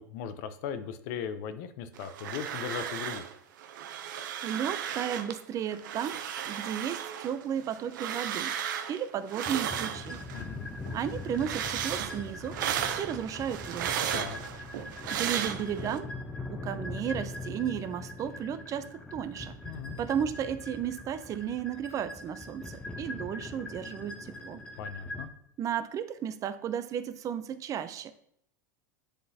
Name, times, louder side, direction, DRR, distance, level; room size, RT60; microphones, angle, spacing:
voice 1, 0.0-3.2 10.3-10.6 14.1-14.4 19.7-20.0 24.8-25.3, left 8 dB, 60° left, 11 dB, 0.7 m, -38 dB
sound 1, 1.9-3.3 3.6-5.4 5.7-10.5 10.8-16.0, right 9 dB, 80° right, 0.6 m, -35 dB
voice 2, 4.4-8.6 8.9-10.2 10.9-12.6 13.0-14.0 15.1-16.1 16.5-19.6 20.0-24.6 25.6-28.1, right 9 dB, 35° right, 13 dB, 0.4 m, -34 dB
sound 2, 9.4-25.3, left 2 dB, 10° left, 0.8 m, -41 dB
9.9 x 3.8 x 2.7 m, 0.73 s
supercardioid pair, 115°, 10 cm